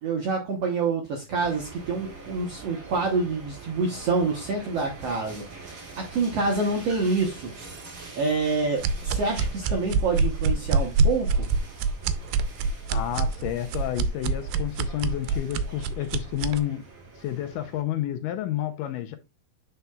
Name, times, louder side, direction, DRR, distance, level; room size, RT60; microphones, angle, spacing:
voice 1, 0.0-7.5 8.1-11.5, right 4 dB, 70° right, 1.5 m, -27 dB
sound 1, 1.4-17.8, right 3 dB, 50° right, 1.0 m, -45 dB
sound 2, 8.8-16.6, right 4 dB, 85° right, 2.4 m, -25 dB
voice 2, 12.9-16.8 17.2-19.2, left 12 dB, 80° left, 2.1 m, -30 dB
7.8 x 5.5 x 2.3 m
omnidirectional pair, 4.1 m